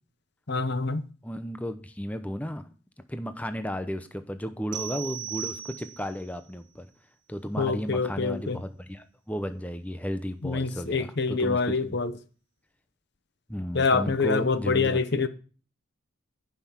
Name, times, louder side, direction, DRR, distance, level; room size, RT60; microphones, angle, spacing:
voice 1, 0.5-1.0 7.6-8.6 10.4-12.1 13.7-15.3, left 4 dB, 55° left, 0.9 m, -26 dB
voice 2, 1.2-2.7 3.1-6.9 7.3-12.0 13.5-15.3, equal, 5° left, 0.8 m, -34 dB
sound 1, 4.7-6.3, right 10 dB, 40° right, 1.9 m, -37 dB
14.5 x 6.0 x 7.2 m
head